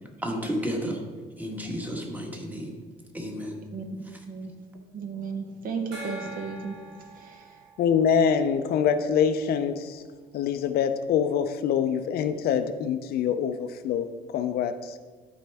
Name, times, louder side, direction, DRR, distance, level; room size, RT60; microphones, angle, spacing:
voice 1, 0.2-1.0 1.4-2.8 3.1-3.6, equal, 10° right, 2 dB, 1.3 m, -32 dB
voice 2, 3.7-4.5 4.9-6.8 7.1-7.6, right 5 dB, 55° right, 5 dB, 1.1 m, -35 dB
Gong, 5.9-9.2, right 1 dB, 80° right, 1.9 m, -44 dB
voice 3, 7.8-10.0 10.3-14.9, left 7 dB, 65° left, 9 dB, 0.5 m, -25 dB
12.0 x 4.4 x 3.4 m, 1.4 s
cardioid pair, 110°, 17 cm